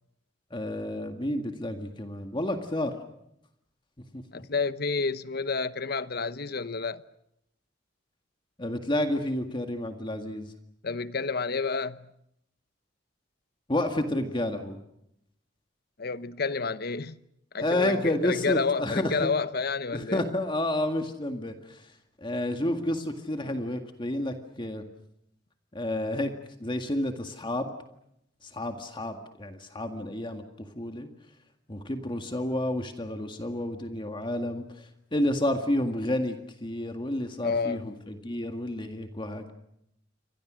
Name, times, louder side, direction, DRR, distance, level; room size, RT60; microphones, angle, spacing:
voice 1, 0.5-3.0 4.1-4.2 8.6-10.5 13.7-14.8 17.6-19.3 19.9-21.9 22.2-24.8 25.7-26.3 26.6-27.7 28.4-31.1 31.7-39.5, left 1 dB, 25° left, 1.9 m, -30 dB
voice 2, 4.3-7.0 10.8-12.1 16.0-17.2 17.5-20.2 37.4-37.9, left 4 dB, 55° left, 1.0 m, -30 dB
29.0 x 25.0 x 6.3 m
head